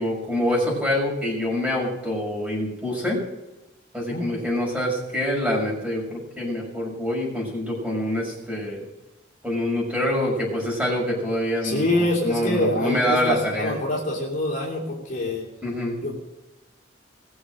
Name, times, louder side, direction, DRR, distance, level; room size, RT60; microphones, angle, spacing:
voice 1, 0.0-3.2 3.9-8.8 9.4-13.7 15.6-16.0, left 1 dB, 5° right, -2 dB, 6.1 m, -26 dB
voice 2, 11.6-15.5 16.0-16.2, left 1 dB, 45° left, -3 dB, 3.3 m, -25 dB
21.0 x 7.2 x 6.3 m, 1.0 s
head